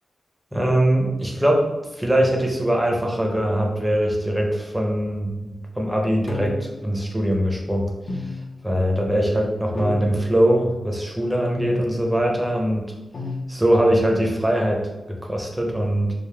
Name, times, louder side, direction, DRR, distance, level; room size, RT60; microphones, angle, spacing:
voice 1, 0.5-1.7 1.9-7.9 8.1-8.3 8.6-12.9 13.5-14.8 15.1-16.1, right 1 dB, 5° right, 0 dB, 0.5 m, -22 dB
sound 1, 6.3-6.9 8.1-8.7 9.7-10.3 11.5-12.1 13.1-13.5, left 3 dB, 55° left, 0.5 m, -32 dB
3.3 x 2.0 x 2.2 m, 1.1 s
wide cardioid pair, 85°, 0 cm